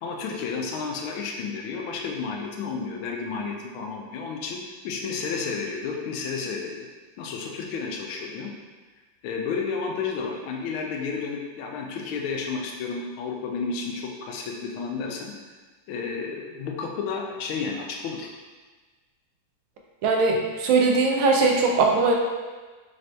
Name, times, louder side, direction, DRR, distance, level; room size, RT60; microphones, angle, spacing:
voice 1, 0.0-4.6 4.8-6.9 7.2-8.5 9.2-15.3 15.9-18.3, left 5 dB, 85° left, 1 dB, 1.4 m, -31 dB
voice 2, 20.0-22.1, right 3 dB, 85° right, 1 dB, 1.4 m, -20 dB
4.2 x 2.7 x 3.2 m, 1.3 s
omnidirectional pair, 2.2 m